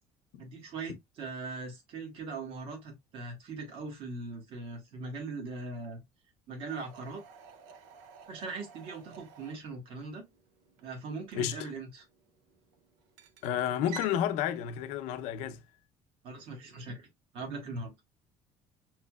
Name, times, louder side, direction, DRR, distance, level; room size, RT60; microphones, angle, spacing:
voice 1, 0.4-6.0 6.5-7.2 8.3-10.3 10.8-12.0 16.2-17.1 17.3-17.9, right 3 dB, 50° right, 1.7 m, -40 dB
sound 1, 6.7-14.2, right 7 dB, 80° right, 0.7 m, -52 dB
voice 2, 11.4-11.7 13.4-15.6, left 10 dB, 75° left, 0.6 m, -31 dB
5.7 x 3.1 x 2.3 m
cardioid pair, 180°, 12 cm